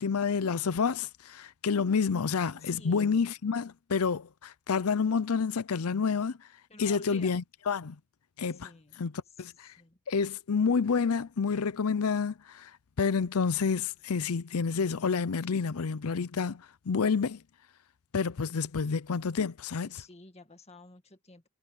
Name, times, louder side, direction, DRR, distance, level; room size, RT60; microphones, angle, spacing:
voice 1, 0.0-6.4 6.8-8.0 8.4-8.7 9.0-9.1 9.4-9.7 10.1-12.7 13.0-17.4 18.1-20.0, left 5 dB, 85° left, 0.6 m, -29 dB
voice 2, 2.5-3.1 6.7-7.4 8.5-9.1 9.4-9.5 9.8-10.0 19.9-21.5, left 3 dB, 30° left, 1.9 m, -52 dB
head